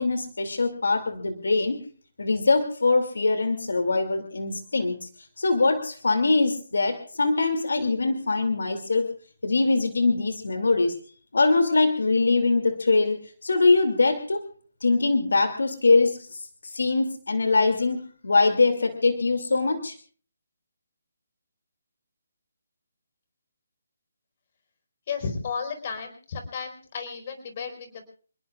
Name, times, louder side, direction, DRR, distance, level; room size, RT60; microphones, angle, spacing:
voice 1, 0.0-1.9 2.2-5.1 5.4-9.1 9.4-10.9 11.3-14.4 14.8-16.3 16.7-20.0, left 3 dB, 80° left, 6 dB, 2.6 m, -23 dB
voice 2, 25.1-28.1, left 5 dB, 40° left, 6 dB, 4.5 m, -33 dB
28.0 x 19.5 x 2.4 m, 0.43 s
hypercardioid pair, 160°, 0 cm